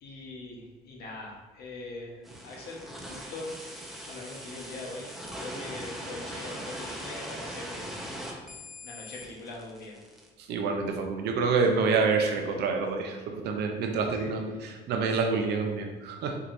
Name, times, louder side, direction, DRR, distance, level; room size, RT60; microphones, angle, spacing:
voice 1, 0.0-3.5 4.1-8.1 8.8-10.0 14.1-14.3, left 2 dB, 70° left, -2 dB, 1.0 m, -42 dB
sound 1, 2.2-10.3, equal, ahead, 0.6 m, -40 dB
voice 2, 10.4-16.4, right 4 dB, 75° right, 3 dB, 0.6 m, -27 dB
4.6 x 2.8 x 2.6 m, 1.2 s
cardioid pair, 110°, 17 cm